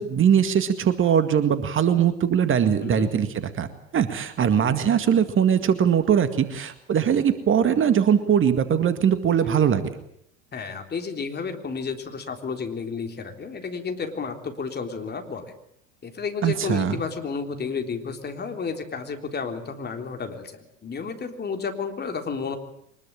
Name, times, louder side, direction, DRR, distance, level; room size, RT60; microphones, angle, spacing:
voice 1, 0.0-3.3 3.5-3.7 3.9-9.8 16.4-17.0, right 8 dB, 35° right, 10 dB, 2.0 m, -21 dB
voice 2, 10.5-15.5 16.0-22.6, left 5 dB, 25° left, 5 dB, 3.8 m, -32 dB
24.0 x 21.0 x 8.8 m, 0.70 s
figure-of-eight pair, 75°, 38 cm